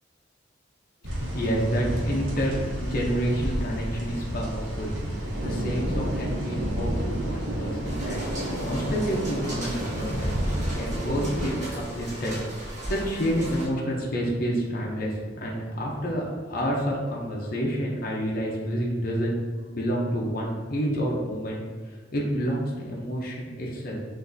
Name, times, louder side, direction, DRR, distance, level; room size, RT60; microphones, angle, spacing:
voice 1, 1.0-10.3 10.7-12.4 12.6-19.4 19.7-24.0, equal, 45° left, -3 dB, 0.6 m, -29 dB
sound 1, 1.0-11.5, equal, 85° right, 0.9 m, -30 dB
sound 2, 7.8-13.7, right 1 dB, 40° right, 1.2 m, -37 dB
6.0 x 2.6 x 2.6 m, 1.5 s
head